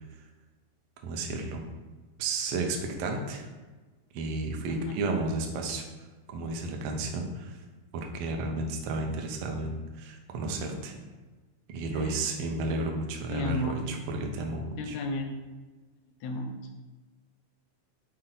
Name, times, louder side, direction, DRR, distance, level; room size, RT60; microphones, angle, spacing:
voice 1, 1.0-1.6 2.2-3.4 4.1-5.8 6.3-7.6 7.9-11.0 11.7-14.9, right 2 dB, 80° right, 2 dB, 1.4 m, -32 dB
voice 2, 11.9-12.3 13.3-13.8 14.8-15.4 16.2-16.6, left 1 dB, 80° left, 4 dB, 1.7 m, -33 dB
5.8 x 4.4 x 3.9 m, 1.3 s
omnidirectional pair, 3.7 m